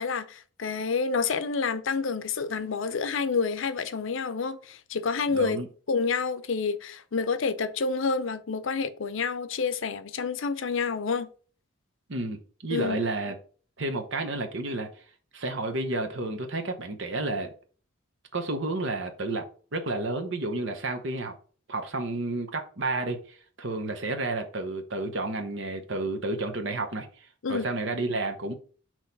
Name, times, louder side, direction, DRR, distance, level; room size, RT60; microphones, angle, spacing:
voice 1, 0.0-5.6 5.9-11.3 12.7-13.0 27.4-27.7, left 5 dB, 70° left, 0.6 m, -28 dB
voice 2, 5.3-5.7 12.1-13.3 13.8-15.0 15.3-17.5 18.3-19.4 19.7-21.3 21.7-28.5, right 2 dB, 65° right, 0.9 m, -31 dB
6.3 x 3.0 x 5.3 m
head